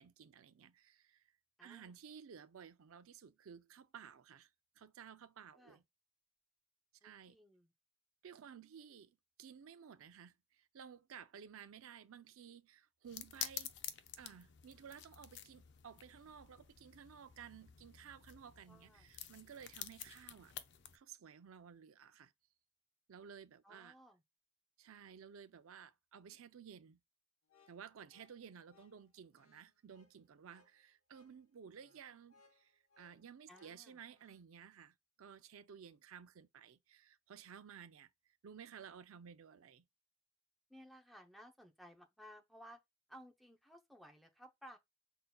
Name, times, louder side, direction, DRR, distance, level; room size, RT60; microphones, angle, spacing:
voice 1, 0.0-1.3 1.6-4.5 4.8-5.8 7.0-7.4 8.2-13.7 14.2-20.5 20.9-22.3 23.1-24.0 24.8-27.0 27.7-39.8, right 7 dB, 75° right, 0.4 m, -55 dB
voice 2, 1.6-2.0 5.5-5.8 7.0-7.7 18.7-19.1 23.6-24.2 33.5-34.0 40.7-42.8 43.1-44.8, equal, ahead, 0.6 m, -58 dB
sound 1, 13.0-21.0, left 10 dB, 55° left, 0.5 m, -50 dB
sound 2, 27.4-34.4, left 4 dB, 75° left, 1.0 m, -72 dB
5.6 x 3.8 x 2.2 m
head